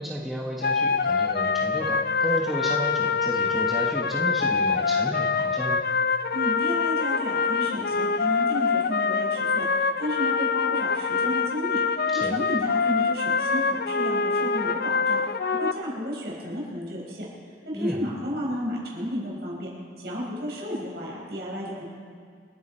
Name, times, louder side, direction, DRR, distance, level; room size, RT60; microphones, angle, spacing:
voice 1, 0.0-5.8 12.1-12.4 17.7-18.0, equal, ahead, -3 dB, 1.0 m, -32 dB
sound 1, 0.6-15.7, left 5 dB, 55° left, 0.4 m, -25 dB
voice 2, 6.3-11.8 12.1-15.2 15.5-17.3 17.6-19.7 20.0-21.8, equal, 60° right, -4 dB, 4.9 m, -32 dB
28.0 x 9.6 x 4.3 m, 2.1 s
head